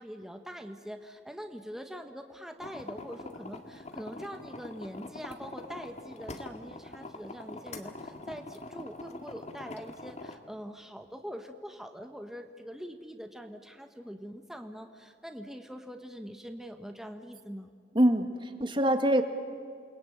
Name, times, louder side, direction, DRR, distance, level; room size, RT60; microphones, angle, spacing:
voice 1, 0.0-17.7, equal, 5° right, 5 dB, 1.2 m, -43 dB
sound 1, 2.6-10.4, left 2 dB, 40° left, 1.9 m, -44 dB
voice 2, 17.9-19.2, right 1 dB, 30° right, 7 dB, 2.0 m, -24 dB
29.0 x 21.0 x 9.0 m, 2.3 s
head